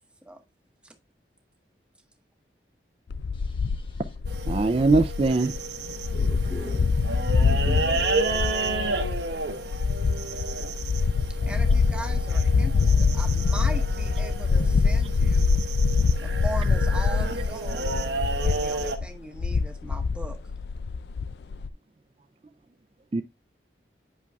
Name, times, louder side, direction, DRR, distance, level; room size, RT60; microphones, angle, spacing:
sound 1, 3.1-21.7, left 4 dB, 80° left, 0.4 m, -25 dB
voice 1, 3.3-4.1 6.1-8.3, left 1 dB, 30° left, 0.8 m, -42 dB
sound 2, 4.3-18.9, right 3 dB, 80° right, 1.0 m, -32 dB
voice 2, 4.5-5.5 23.1-23.2, right 3 dB, 35° right, 0.4 m, -21 dB
voice 3, 11.4-15.6 16.2-18.0 18.4-20.4, right 1 dB, 5° right, 0.8 m, -39 dB
8.3 x 5.9 x 2.3 m
head